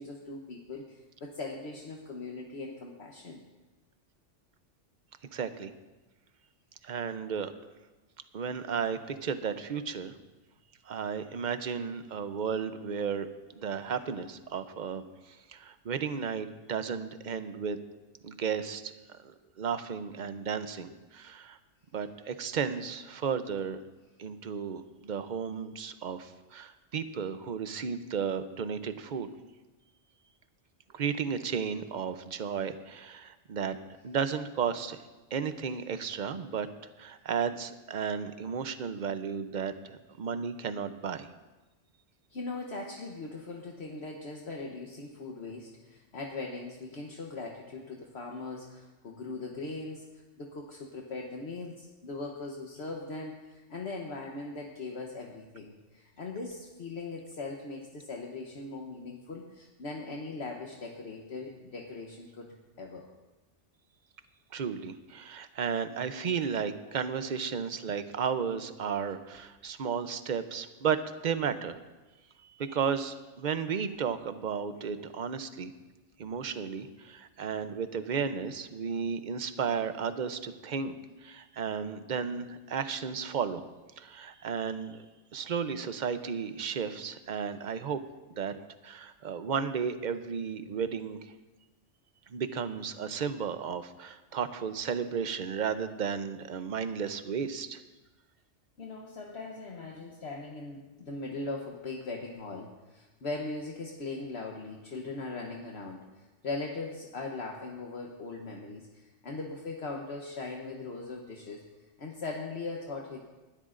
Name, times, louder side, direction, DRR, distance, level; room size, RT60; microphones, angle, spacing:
voice 1, 0.0-3.4 42.3-50.0 50.4-63.1 98.8-106.0 106.4-111.6 112.0-113.3, left 3 dB, 60° left, 0 dB, 1.2 m, -40 dB
voice 2, 5.3-5.7 6.8-7.5 8.3-10.1 10.8-13.3 13.6-17.8 18.2-21.6 21.9-23.8 24.2-29.3 30.9-33.8 34.0-35.0 35.3-36.7 37.0-41.3 64.5-71.8 72.4-75.7 76.2-81.0 81.2-83.6 84.0-85.0 85.3-88.0 88.3-88.6 88.8-91.3 92.3-97.8, right 6 dB, 45° right, 10 dB, 0.7 m, -34 dB
20.0 x 12.0 x 2.5 m, 1.1 s
omnidirectional pair, 1.2 m